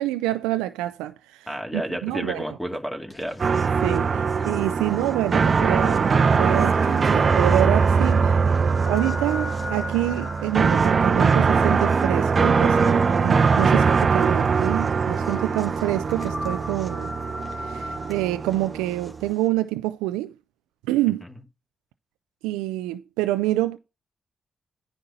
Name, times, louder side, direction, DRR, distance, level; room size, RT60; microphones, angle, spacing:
voice 1, 0.0-1.5 1.7-2.4 3.8-8.4 8.8-17.1 17.6-20.3 20.9-21.2 22.4-23.8, right 15 dB, 90° right, 0.4 m, -27 dB
voice 2, 1.5-3.5, equal, 10° left, 2.4 m, -31 dB
sound 1, 3.1-19.5, left 2 dB, 30° left, 2.3 m, -40 dB
sound 2, 3.4-19.3, right 5 dB, 55° right, 0.7 m, -21 dB
9.7 x 4.2 x 5.7 m
hypercardioid pair, 40°, 0 cm